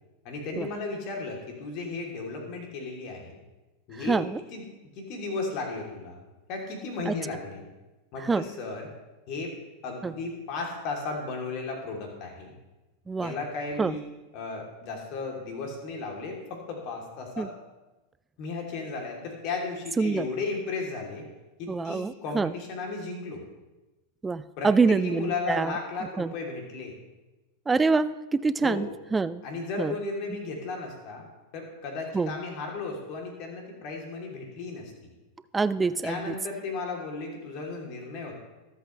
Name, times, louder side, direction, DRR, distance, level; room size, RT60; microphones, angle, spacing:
voice 1, 0.2-3.4 3.9-4.2 4.5-4.6 4.9-6.2 6.5-7.6 8.1-8.9 9.3-9.5 9.8-12.5 13.2-14.0 14.3-17.5 18.4-21.2 21.6-23.4 24.6-26.9 28.6-28.9 29.4-31.2 31.5-34.9 36.0-38.4, left 3 dB, 40° left, 1 dB, 3.2 m, -35 dB
voice 2, 3.9-4.4 7.1-7.2 8.2-8.5 10.0-10.1 13.1-13.3 13.8-13.9 17.4-17.5 20.0-20.3 21.7-22.5 24.2-25.8 26.2-26.3 27.7-29.4 29.8-29.9 32.1-32.3 35.5-36.3, right 4 dB, 15° right, 15 dB, 0.4 m, -26 dB
24.0 x 8.3 x 3.3 m, 1.1 s
figure-of-eight pair, 90°, 0 cm